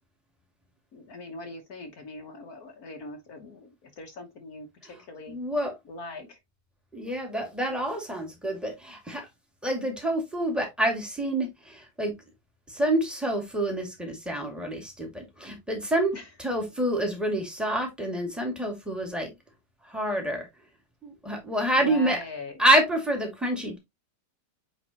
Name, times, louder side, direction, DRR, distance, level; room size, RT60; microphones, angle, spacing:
voice 1, 0.9-5.3 5.9-6.4 16.1-16.3 21.7-22.6, left 2 dB, 60° left, 1.6 m, -41 dB
voice 2, 5.3-5.7 6.9-9.3 9.6-12.1 12.7-19.3 19.8-20.5 21.0-22.2 22.6-23.8, right 1 dB, ahead, 2.0 m, -27 dB
9.0 x 4.0 x 2.9 m
omnidirectional pair, 1.9 m